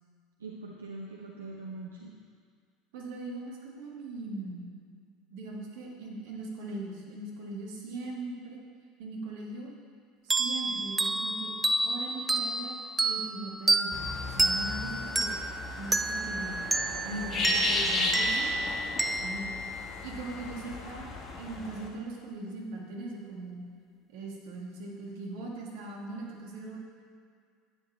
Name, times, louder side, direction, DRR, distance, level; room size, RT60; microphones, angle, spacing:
voice 1, 0.4-2.1 17.1-18.2, right 3 dB, 80° right, -1 dB, 0.7 m, -42 dB
voice 2, 2.9-4.7 5.3-8.6 9.0-9.7 10.2-11.5 11.8-15.3 15.8-16.6 17.0-18.5 19.2-19.5 20.0-23.7 24.1-26.8, right 2 dB, 60° right, -2 dB, 1.9 m, -40 dB
sound 1, 10.3-20.6, right 2 dB, 10° right, 0.5 m, -30 dB
sound 2, 13.9-21.9, left 3 dB, 35° left, 1.4 m, -34 dB
11.5 x 9.5 x 3.3 m, 2.1 s
figure-of-eight pair, 70°, 0 cm